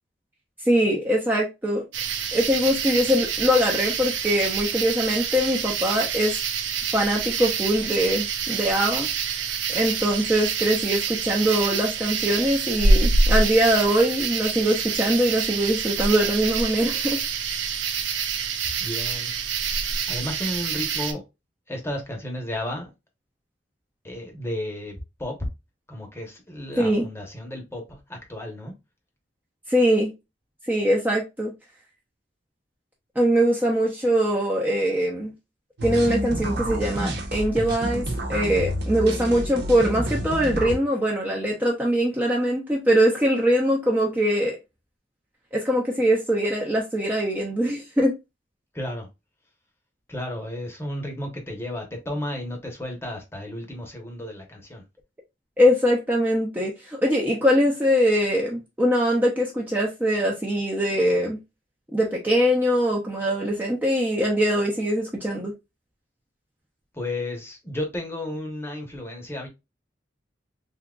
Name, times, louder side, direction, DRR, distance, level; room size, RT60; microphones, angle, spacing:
voice 1, 0.7-1.8 2.3-6.4 6.9-9.1 9.7-17.2 26.8-27.1 29.7-30.1 30.7-31.5 33.2-35.3 35.8-44.6 45.5-48.1 55.6-61.4 61.9-65.5, equal, 10° right, 0.6 m, -22 dB
sound 1, 1.9-21.1, right 4 dB, 85° right, 0.6 m, -26 dB
voice 2, 18.8-19.3 20.1-21.2 21.7-22.9 24.0-25.4 25.9-28.7 48.7-49.1 50.1-54.8 66.9-69.5, left 1 dB, 15° left, 0.9 m, -33 dB
sound 2, 35.8-40.8, equal, 65° right, 0.9 m, -29 dB
3.6 x 2.8 x 2.3 m
head